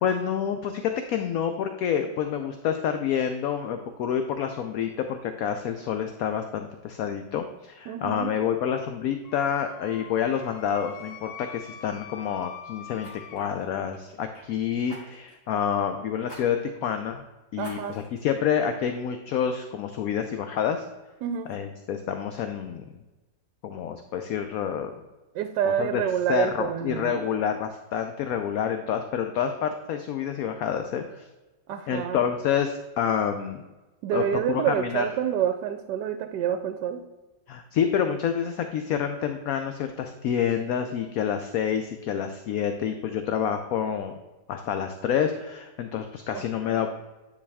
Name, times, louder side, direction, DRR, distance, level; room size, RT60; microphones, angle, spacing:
voice 1, 0.0-17.2 17.5-20.8 21.5-22.9 23.6-24.9 25.8-26.0 26.3-31.3 31.9-33.6 34.1-35.1 37.5-44.1 44.5-46.9, left 8 dB, 70° left, 7 dB, 0.9 m, -28 dB
voice 2, 7.9-8.3 17.6-18.0 21.2-21.5 25.3-27.3 31.7-32.2 34.0-37.0 46.3-46.9, right 9 dB, 75° right, 8 dB, 1.1 m, -28 dB
Wind instrument woodwind instrument, 9.2-13.4, left 8 dB, 90° left, 1.3 m, -44 dB
Fire, 10.3-10.5 10.9-11.1 13.0-14.5 14.9-15.4 16.2-16.4 16.8-16.9 17.6-18.2 18.7-18.8, equal, 45° left, 2.4 m, -48 dB
9.5 x 4.8 x 3.4 m, 1.1 s
omnidirectional pair, 1.9 m